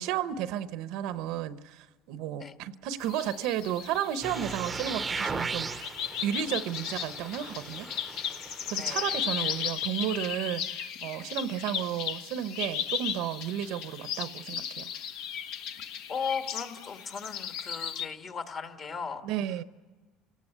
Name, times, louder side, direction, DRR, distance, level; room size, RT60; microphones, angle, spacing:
voice 1, 0.0-7.9 8.7-14.9 19.2-19.6, right 10 dB, 70° right, 12 dB, 0.9 m, -33 dB
sound 1, 3.0-18.1, left 8 dB, 70° left, 1.1 m, -36 dB
sound 2, 4.2-9.7, right 4 dB, 20° right, 0.8 m, -38 dB
voice 2, 8.8-9.2 16.1-19.2, left 6 dB, 40° left, 6 dB, 1.8 m, -37 dB
29.5 x 18.0 x 6.8 m, 1.3 s
cardioid pair, 130°, 0 cm